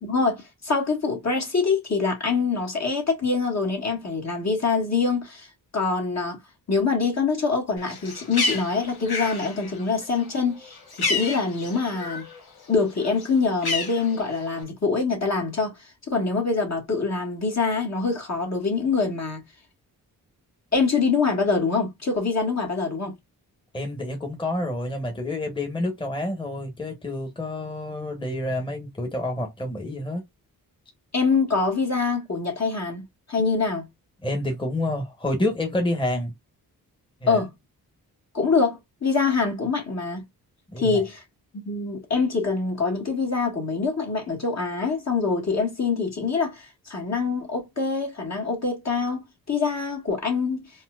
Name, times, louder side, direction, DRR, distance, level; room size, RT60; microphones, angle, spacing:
voice 1, 0.0-5.5 5.7-6.4 6.7-12.3 12.7-15.7 16.1-19.4 20.7-23.1 31.1-33.9 37.3-37.5 38.3-40.2 40.8-41.2 41.6-50.7, left 4 dB, 45° left, 1.6 m, -25 dB
Bird, 7.8-12.4 12.7-14.6, left 3 dB, 85° left, 1.3 m, -30 dB
voice 2, 23.7-30.2 34.2-36.3 37.2-37.4 40.7-41.0, left 1 dB, 15° left, 1.1 m, -28 dB
4.3 x 2.1 x 2.2 m
cardioid pair, 65°, 37 cm